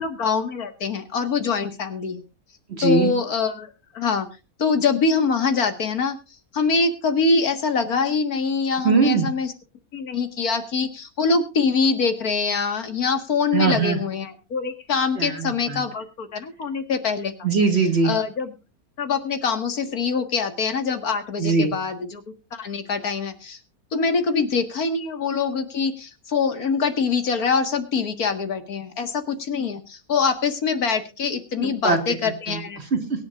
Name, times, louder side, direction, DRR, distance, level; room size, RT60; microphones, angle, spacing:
voice 1, 0.0-2.2 2.8-4.3 4.6-6.2 6.5-9.5 9.9-17.3 18.0-18.5 19.0-22.2 22.5-23.6 23.9-32.8, left 5 dB, 80° left, 8 dB, 2.2 m, -24 dB
voice 2, 2.7-3.1 8.8-9.3 13.5-14.0 15.2-15.8 17.4-18.1 21.4-21.7 31.6-33.2, right 4 dB, 45° right, 5 dB, 2.6 m, -22 dB
23.0 x 10.5 x 2.5 m, 0.29 s
omnidirectional pair, 1.6 m